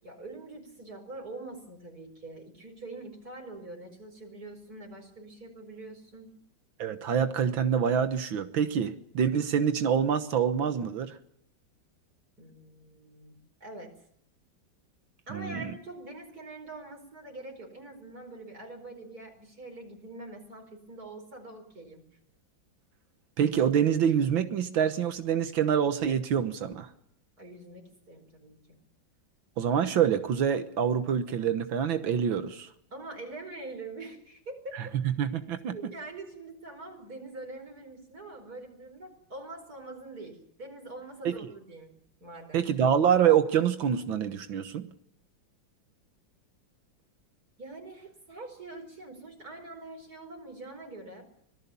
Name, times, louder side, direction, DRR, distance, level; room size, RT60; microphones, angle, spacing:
voice 1, 0.0-6.4 12.4-13.3 13.6-13.9 15.3-22.1 27.4-28.6 32.9-35.0 35.7-41.9 42.2-42.6 47.6-51.3, right 2 dB, 50° right, 3 dB, 5.2 m, -44 dB
voice 2, 6.8-11.1 15.3-15.7 23.4-26.9 29.6-32.7 35.0-35.8 41.3-41.5 42.5-44.9, right 8 dB, 80° right, 9 dB, 2.0 m, -26 dB
25.5 x 18.5 x 7.0 m, 0.72 s
omnidirectional pair, 2.1 m